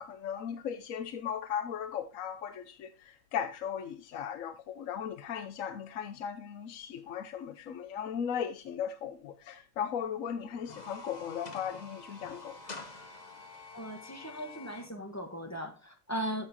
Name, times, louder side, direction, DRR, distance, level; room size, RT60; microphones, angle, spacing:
voice 1, 0.0-2.9 3.3-12.6, left 8 dB, 75° left, 1.2 m, -37 dB
sound 1, 10.5-14.9, left 3 dB, 35° left, 1.0 m, -47 dB
voice 2, 13.7-16.5, equal, 15° left, 1.2 m, -38 dB
8.9 x 8.0 x 2.8 m
omnidirectional pair, 1.4 m